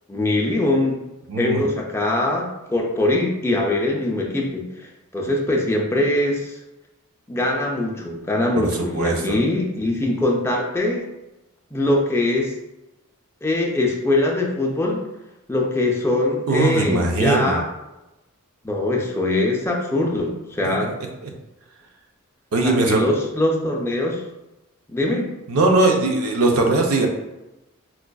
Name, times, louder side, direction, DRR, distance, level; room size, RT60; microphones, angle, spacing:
voice 1, 0.1-1.0 1.4-4.9 5.1-6.6 7.3-11.1 11.7-12.5 13.4-15.0 15.5-17.7 18.6-20.9 22.6-24.2 24.9-25.3, left 2 dB, 10° left, -1 dB, 0.4 m, -22 dB
voice 2, 1.3-1.6 8.5-9.4 16.5-17.6 20.6-20.7 21.2-21.3 22.5-23.0 25.5-27.1, right 2 dB, 70° right, 2 dB, 0.6 m, -20 dB
4.6 x 2.4 x 2.3 m, 0.97 s
head